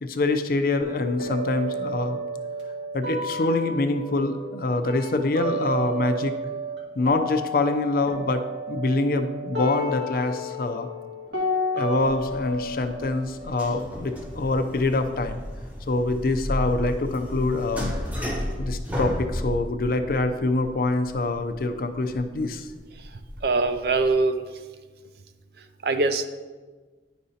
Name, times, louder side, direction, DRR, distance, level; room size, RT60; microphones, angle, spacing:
voice 1, 0.0-2.2 2.9-6.3 7.0-10.9 11.7-15.4 15.9-17.9 18.6-22.7, left 2 dB, 50° left, 8 dB, 0.5 m, -25 dB
sound 1, 0.8-6.8 7.0-14.8, equal, 80° right, 1.8 m, -32 dB
sound 2, 12.0-24.2, equal, 10° right, 0.7 m, -34 dB
voice 2, 23.4-24.4 25.8-26.3, right 3 dB, 60° right, 10 dB, 0.4 m, -22 dB
10.0 x 5.1 x 2.8 m, 1.4 s
head